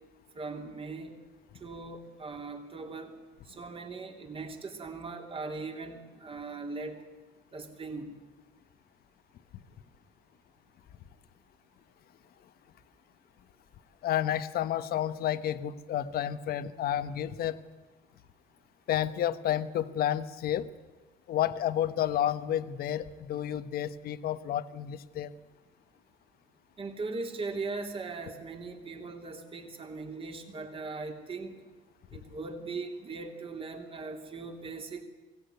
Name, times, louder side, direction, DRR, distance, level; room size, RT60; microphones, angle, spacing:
voice 1, 0.3-1.2 1.6-3.1 3.5-7.0 7.5-8.1 26.8-31.5 32.1-35.0, right 3 dB, 35° right, 4 dB, 3.2 m, -39 dB
voice 2, 14.0-17.6 18.9-20.7 21.3-25.3, left 11 dB, 65° left, 13 dB, 1.1 m, -30 dB
22.5 x 17.0 x 9.4 m, 1.2 s
cardioid pair, 110°, 17 cm